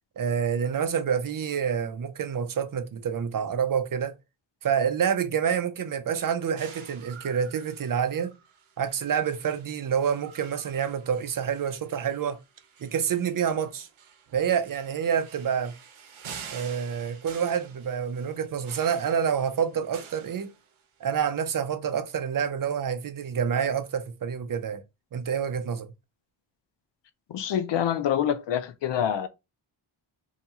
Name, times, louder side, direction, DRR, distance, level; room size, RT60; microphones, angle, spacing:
voice 1, 0.2-4.1 4.6-8.3 8.8-12.4 12.8-13.9 14.3-15.7 16.5-20.5 21.0-24.8 25.1-25.9, right 7 dB, 45° right, 0.6 m, -27 dB
sound 1, 6.6-21.0, right 7 dB, 75° right, 0.8 m, -48 dB
voice 2, 27.3-29.3, left 9 dB, 60° left, 0.5 m, -26 dB
2.8 x 2.2 x 2.8 m
cardioid pair, 85°, 49 cm